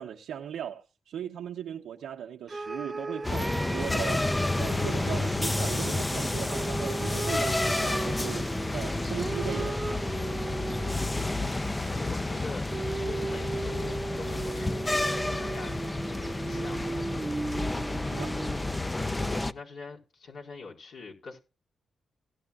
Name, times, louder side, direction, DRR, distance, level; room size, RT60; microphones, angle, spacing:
voice 1, 0.0-4.3 4.6-9.8 17.9-18.4, right 9 dB, 85° right, 0.8 m, -38 dB
sound 1, 2.5-5.5 6.5-11.3 12.7-18.8, right 3 dB, 30° right, 0.5 m, -37 dB
sound 2, 3.2-19.5, left 2 dB, 20° left, 0.6 m, -30 dB
sound 3, 4.4-9.3, left 8 dB, 85° left, 0.7 m, -47 dB
voice 2, 11.1-12.7 13.0-17.0 18.9-21.4, left 4 dB, 70° left, 4.6 m, -44 dB
17.5 x 9.8 x 2.4 m
cardioid pair, 60°, 0 cm